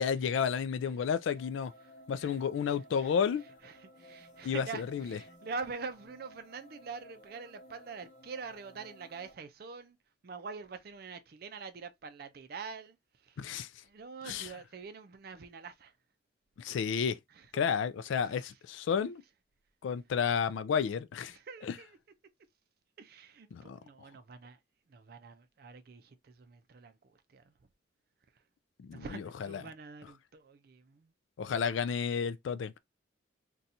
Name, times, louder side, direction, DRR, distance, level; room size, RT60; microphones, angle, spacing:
voice 1, 0.0-1.7 2.1-3.4 4.4-5.2 13.4-13.7 14.2-14.5 16.6-17.2 17.5-19.2 19.8-21.3 21.6-21.8 23.5-23.8 28.8-29.6 31.4-32.8, left 7 dB, 80° left, 0.3 m, -31 dB
sound 1, 1.3-9.3, equal, 35° left, 0.9 m, -56 dB
voice 2, 3.6-10.0 10.2-13.4 13.8-15.9 17.4-17.5 18.2-18.5 21.3-22.0 23.0-24.6 24.9-26.9 27.3-27.5 28.9-31.1, right 4 dB, 50° right, 0.4 m, -45 dB
2.6 x 2.3 x 4.0 m
head